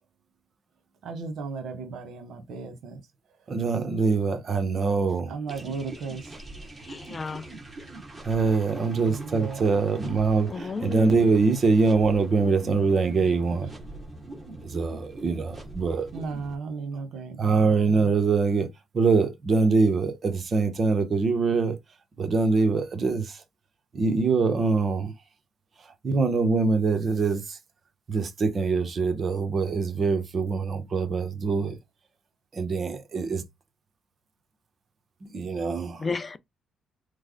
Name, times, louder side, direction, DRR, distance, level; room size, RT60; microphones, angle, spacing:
voice 1, 1.0-3.0 5.3-6.3 9.1-9.7 16.1-18.1, right 4 dB, 75° right, 1.0 m, -35 dB
voice 2, 3.5-5.3 8.2-13.7 14.6-16.1 17.4-18.7 18.9-21.8 22.2-23.4 23.9-25.1 26.0-27.6 28.1-31.8 32.5-33.4 35.2-36.0, right 4 dB, 45° right, 0.8 m, -24 dB
sound 1, 5.5-16.5, right 2 dB, 20° right, 1.4 m, -42 dB
voice 3, 6.8-7.5 10.5-11.4 36.0-36.4, left 4 dB, 30° left, 0.4 m, -32 dB
3.2 x 2.0 x 3.6 m
cardioid pair, 90°, 0 cm